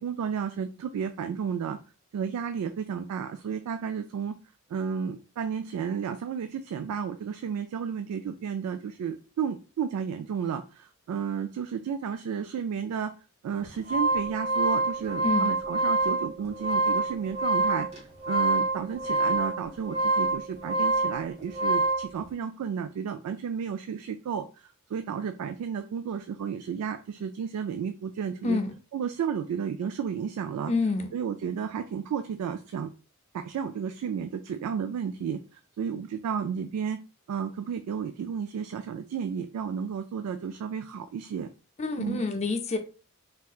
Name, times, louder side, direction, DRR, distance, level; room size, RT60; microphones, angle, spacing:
voice 1, 0.0-1.8 2.1-4.4 4.7-13.1 13.4-28.6 28.9-30.7 31.1-32.9 33.3-37.0 37.3-41.5 42.0-42.2, right 7 dB, 80° right, 0.3 m, -32 dB
sound 1, 13.6-22.1, right 2 dB, 30° right, 1.0 m, -26 dB
voice 2, 30.7-31.1 41.8-42.8, left 3 dB, 30° left, 0.4 m, -27 dB
3.4 x 2.8 x 2.3 m
head